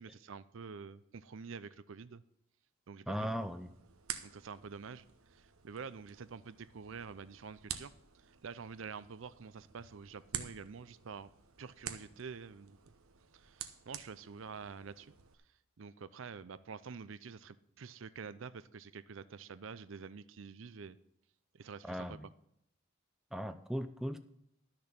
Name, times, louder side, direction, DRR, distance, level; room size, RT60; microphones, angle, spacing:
voice 1, 0.0-2.2 2.9-3.3 4.2-5.0 5.3-7.9 8.2-11.3 11.6-12.8 13.3-15.1 15.8-21.0 21.5-22.2, right 5 dB, 65° right, 0.5 m, -47 dB
voice 2, 3.1-3.7 21.9-22.3 23.3-24.2, equal, ahead, 0.4 m, -38 dB
sound 1, 3.2-15.3, right 9 dB, 85° right, 1.0 m, -49 dB
12.5 x 6.6 x 5.9 m
head